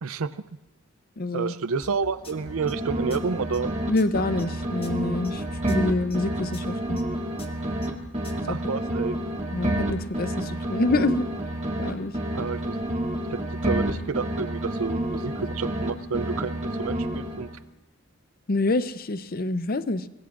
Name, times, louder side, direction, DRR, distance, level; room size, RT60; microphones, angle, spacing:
voice 1, 0.0-0.3 1.3-3.7 8.5-9.2 12.3-12.8 13.3-17.5, right 5 dB, 80° right, 14 dB, 0.5 m, -30 dB
voice 2, 1.2-1.5 3.9-7.0 8.5-8.6 9.5-11.3 11.8-12.1 18.5-20.0, left 2 dB, 45° left, 12 dB, 0.6 m, -26 dB
sound 1, 1.8-8.5, left 2 dB, 25° left, 1.2 m, -45 dB
sound 2, 2.2-3.9 4.1-11.9 12.1-15.9 16.1-17.6, right 1 dB, 35° right, 1.8 m, -29 dB
24.5 x 22.0 x 2.5 m, 1.1 s
head